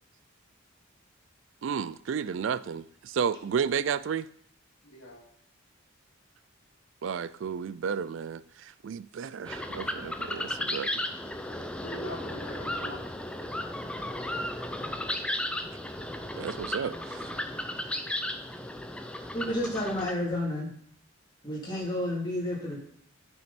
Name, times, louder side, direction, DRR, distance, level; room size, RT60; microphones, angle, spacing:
voice 1, 1.6-4.3 7.0-11.0 16.3-17.3, right 7 dB, 65° right, 0.3 m, -32 dB
voice 2, 4.8-5.2 11.2-13.1, equal, 75° left, 2.6 m, -43 dB
sound 1, 9.5-20.1, left 1 dB, 5° left, 0.6 m, -35 dB
voice 3, 19.3-20.7 21.4-22.8, left 1 dB, 20° left, 3.1 m, -31 dB
8.7 x 6.4 x 4.3 m
head